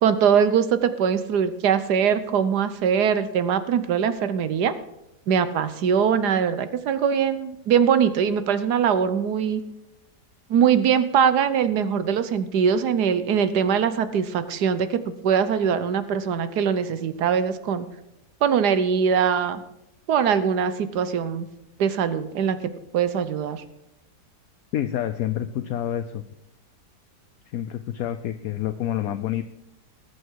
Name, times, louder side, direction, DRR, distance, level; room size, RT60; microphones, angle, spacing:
voice 1, 0.0-4.7 5.3-9.6 10.5-17.9 18.4-19.6 20.1-21.5 21.8-22.6 22.9-23.6, right 7 dB, 70° right, 12 dB, 1.5 m, -22 dB
voice 2, 24.7-26.2 27.5-29.4, left 11 dB, 65° left, 9 dB, 1.0 m, -28 dB
20.0 x 8.1 x 4.7 m, 0.90 s
omnidirectional pair, 1.8 m